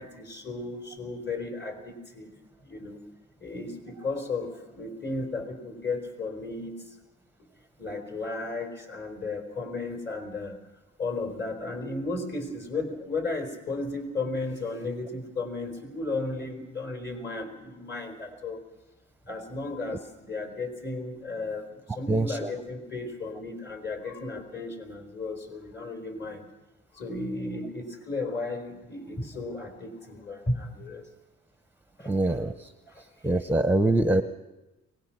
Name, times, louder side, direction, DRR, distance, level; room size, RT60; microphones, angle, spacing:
voice 1, 0.0-3.0 3.4-7.0 7.8-10.6 11.0-18.6 19.3-26.4 26.9-31.1 32.0-32.5 32.9-33.4, left 3 dB, 35° left, 4 dB, 4.6 m, -34 dB
voice 2, 22.1-22.5 32.1-32.7 33.2-34.2, right 2 dB, 5° right, 10 dB, 0.8 m, -24 dB
23.5 x 19.0 x 6.0 m, 1.1 s
cardioid pair, 90°, 30 cm